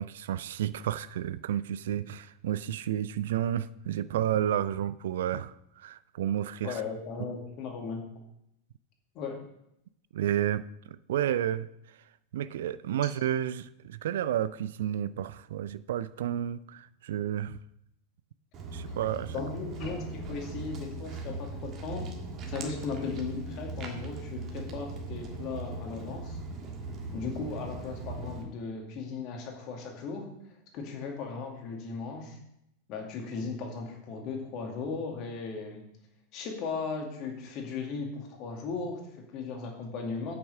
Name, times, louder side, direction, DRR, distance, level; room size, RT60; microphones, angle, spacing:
voice 1, 0.0-6.8 10.1-11.7 12.3-17.6 18.7-19.3, right 11 dB, 60° right, 18 dB, 0.3 m, -31 dB
voice 2, 6.6-8.0 9.1-9.4 19.3-22.1 22.5-26.4 27.1-30.3 30.7-32.4 32.9-35.8 36.3-40.4, left 4 dB, 40° left, 2 dB, 2.2 m, -37 dB
Walk footsteps, 18.5-28.4, right 3 dB, 30° right, 1.8 m, -39 dB
8.5 x 6.9 x 5.5 m, 0.80 s
figure-of-eight pair, 90°, 0 cm